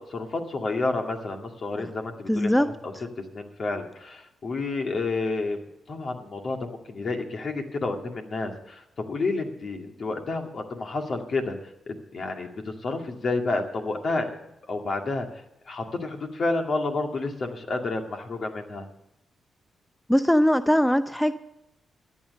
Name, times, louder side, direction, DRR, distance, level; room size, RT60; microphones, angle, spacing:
voice 1, 0.1-2.5 2.8-2.9 3.3-14.3 14.7-15.3 15.7-18.8, left 3 dB, 55° left, 3 dB, 2.1 m, -30 dB
voice 2, 2.3-2.7 20.1-21.3, equal, 5° left, 12 dB, 0.6 m, -21 dB
14.0 x 9.2 x 6.6 m, 0.86 s
supercardioid pair, 50°, 0 cm